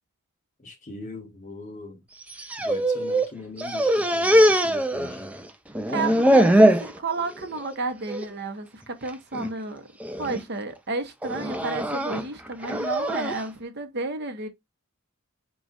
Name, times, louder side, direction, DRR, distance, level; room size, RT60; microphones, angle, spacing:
voice 1, 0.6-2.0 2.6-5.2, left 2 dB, 35° left, 1.4 m, -41 dB
sound 1, 2.2-3.3 3.6-5.5 5.7-6.9 7.4-7.7 8.1-8.3 9.1-9.5 10.0-10.4 11.2-13.4, right 1 dB, 5° right, 0.4 m, -21 dB
voice 2, 5.8-9.9 10.2-14.5, right 3 dB, 50° right, 0.9 m, -32 dB
4.7 x 2.3 x 3.9 m
head